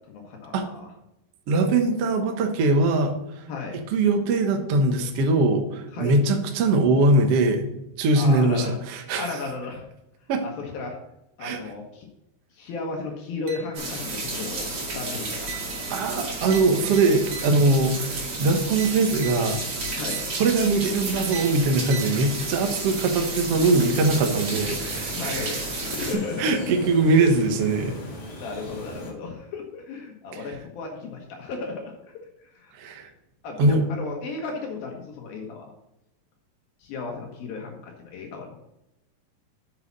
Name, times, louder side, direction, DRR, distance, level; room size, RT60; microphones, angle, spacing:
voice 1, 0.1-0.9 3.5-3.8 5.9-6.2 8.1-8.8 9.2-9.9 10.4-11.0 11.4-12.1 12.5-15.5 18.4-18.6 20.0-20.2 25.1-26.8 27.1-27.3 28.4-32.1 32.4-32.8 33.4-35.7 36.8-38.6, left 4 dB, 70° left, 1 dB, 2.9 m, -34 dB
voice 2, 1.5-3.4 3.9-7.7 8.0-9.3 10.3-10.4 11.4-11.6 15.9-19.6 20.4-25.5 26.4-28.0 32.8-33.1 33.6-33.8, right 2 dB, 80° right, 4 dB, 1.3 m, -22 dB
sound 1, 13.5-14.0 14.4-14.8 15.5-17.9 18.8-20.7 21.3-22.8, right 7 dB, 65° right, 2.9 m, -42 dB
sound 2, 13.7-26.1, right 2 dB, 40° right, 2.7 m, -32 dB
sound 3, 23.6-29.1, equal, 40° left, 2.7 m, -39 dB
8.7 x 7.3 x 4.0 m, 0.90 s
omnidirectional pair, 4.7 m